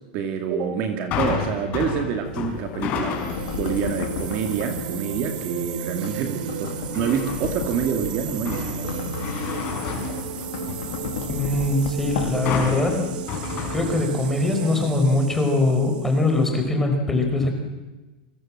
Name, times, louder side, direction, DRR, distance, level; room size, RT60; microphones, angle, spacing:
voice 1, 0.1-3.2 3.5-9.1, right 7 dB, 35° right, 5 dB, 2.5 m, -27 dB
sound 1, 1.1-3.6 4.1-4.5 6.9-7.6 8.1-10.9 12.5-14.4 14.7-14.8, left 6 dB, 30° left, 5.4 m, -30 dB
sound 2, 2.3-13.2, left 10 dB, 60° left, 2.4 m, -35 dB
sound 3, 3.1-16.6, right 7 dB, 65° right, 3.1 m, -33 dB
voice 2, 11.3-13.1 13.7-17.5, left 2 dB, 5° left, 4 dB, 4.7 m, -22 dB
28.5 x 25.5 x 7.6 m, 1.1 s
supercardioid pair, 170°, 5 cm